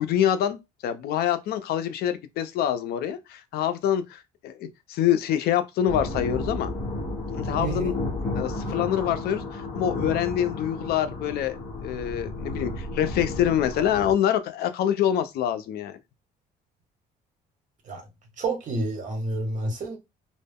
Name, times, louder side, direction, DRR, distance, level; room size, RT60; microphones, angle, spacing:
voice 1, 0.0-6.7 7.3-7.9 8.3-16.0, left 10 dB, 70° left, 0.4 m, -26 dB
sound 1, 5.9-14.1, left 2 dB, 35° left, 0.9 m, -32 dB
voice 2, 7.6-7.9 17.9-18.0 18.4-20.0, right 2 dB, 50° right, 1.1 m, -29 dB
2.1 x 2.0 x 3.4 m
cardioid pair, 110°, 17 cm